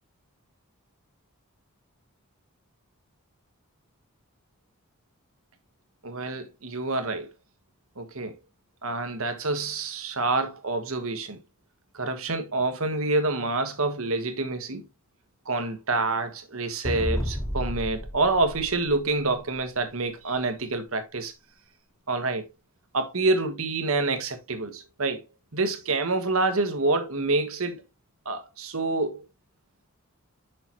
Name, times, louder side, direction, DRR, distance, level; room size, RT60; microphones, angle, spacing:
voice 1, 6.0-7.3 8.0-8.3 8.8-11.4 11.9-14.9 15.4-21.3 22.1-22.4 22.9-25.2 25.5-27.8 28.2-29.2, right 3 dB, 70° right, 1.4 m, -27 dB
sound 1, 16.8-19.5, equal, 15° left, 1.5 m, -32 dB
6.4 x 5.8 x 3.0 m
head